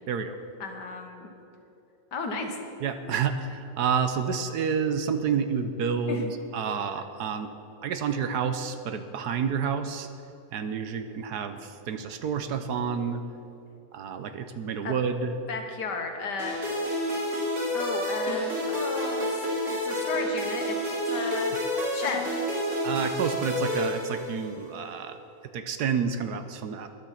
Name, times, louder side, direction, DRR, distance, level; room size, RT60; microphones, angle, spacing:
voice 1, 0.6-1.3 2.1-2.6 6.1-6.3 14.8-14.9 15.5-16.6 17.7-19.4 19.7-20.8 21.1-21.5 21.9-22.3, left 4 dB, 70° left, 4 dB, 1.9 m, -33 dB
voice 2, 2.8-6.3 6.5-7.5 7.8-10.1 10.5-13.2 13.9-15.3 22.8-25.2 25.5-26.9, right 6 dB, 70° right, 9 dB, 1.2 m, -29 dB
sound 1, 16.4-24.7, equal, 45° right, 3.5 m, -29 dB
13.5 x 10.5 x 5.8 m, 2.8 s
omnidirectional pair, 1.9 m